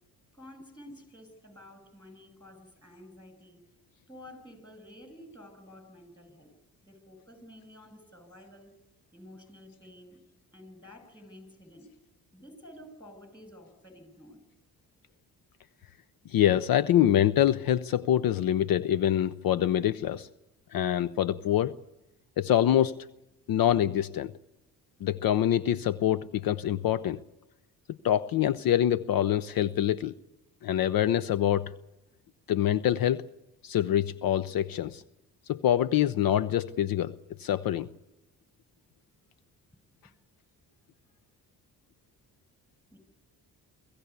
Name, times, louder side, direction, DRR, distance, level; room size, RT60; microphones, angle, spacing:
voice 1, 0.3-3.6 4.1-6.5 6.8-8.7 9.1-10.2 10.5-11.9 12.3-14.4 40.0-40.1 42.9-43.0, left 1 dB, 10° left, 9 dB, 7.2 m, -51 dB
voice 2, 16.3-20.3 20.7-21.8 22.4-23.0 23.5-24.3 25.0-27.2 28.0-30.1 30.6-31.7 32.5-33.3 33.6-35.0 35.5-37.9, left 11 dB, 60° left, 18 dB, 0.7 m, -25 dB
24.5 x 15.5 x 8.2 m, 0.96 s
supercardioid pair, 55°, 40 cm